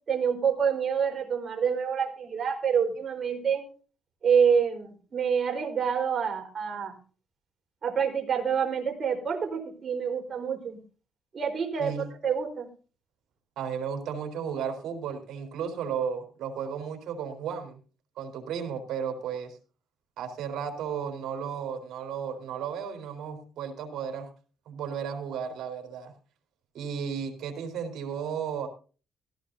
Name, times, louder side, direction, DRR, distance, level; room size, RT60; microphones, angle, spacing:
voice 1, 0.1-3.7 4.2-7.0 7.8-10.8 11.3-11.9 12.2-12.7, right 7 dB, 45° right, 2 dB, 4.4 m, -27 dB
voice 2, 11.8-12.1 13.6-17.8 18.2-19.6 20.2-24.3 24.7-26.1 26.7-28.7, right 7 dB, 80° right, 4 dB, 4.1 m, -34 dB
17.0 x 15.5 x 2.8 m, 0.38 s
cardioid pair, 90°, 0 cm